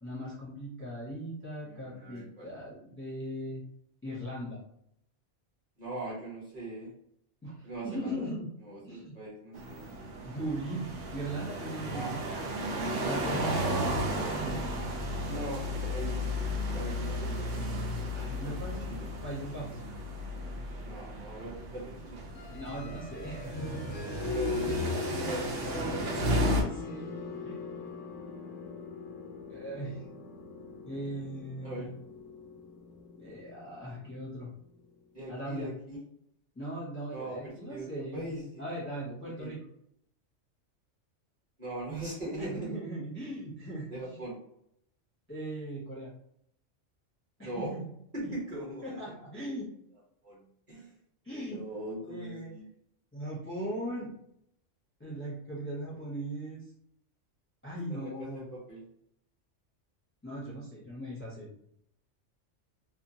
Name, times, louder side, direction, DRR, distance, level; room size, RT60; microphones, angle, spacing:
voice 1, 0.0-3.6 4.0-4.6 7.4-8.5 8.8-9.2 10.2-12.5 12.9-14.6 18.1-18.9 19.2-19.8 22.5-24.0 24.6-25.2 25.6-27.2 27.4-27.8 29.5-30.0 30.8-31.9 33.2-34.5 35.3-35.7 36.5-38.2 38.6-39.6 42.4-44.2 45.3-46.1 47.4-47.9 48.2-48.4 48.8-49.7 51.2-51.6 52.0-52.5 53.1-54.1 55.0-56.6 57.6-58.4 60.2-61.5, right 1 dB, 15° left, -6 dB, 0.7 m, -39 dB
voice 2, 1.6-2.5 5.8-6.9 7.6-8.2 8.6-9.9 11.9-12.5 15.3-16.3 16.7-17.4 18.0-18.6 18.9-19.1 20.8-22.2 24.3-25.6 31.6-31.9 35.1-36.0 37.1-38.6 39.4-39.5 41.6-42.8 43.9-44.4 47.4-47.7 48.1-49.0 50.2-50.4 50.7-50.9 51.5-52.6 57.9-58.8, right 1 dB, 35° right, -6 dB, 1.0 m, -40 dB
sound 1, 9.5-26.6, equal, 75° right, 0.9 m, -34 dB
sound 2, 22.3-34.9, left 5 dB, 75° left, 0.9 m, -41 dB
2.9 x 2.1 x 2.7 m, 0.73 s
omnidirectional pair, 1.3 m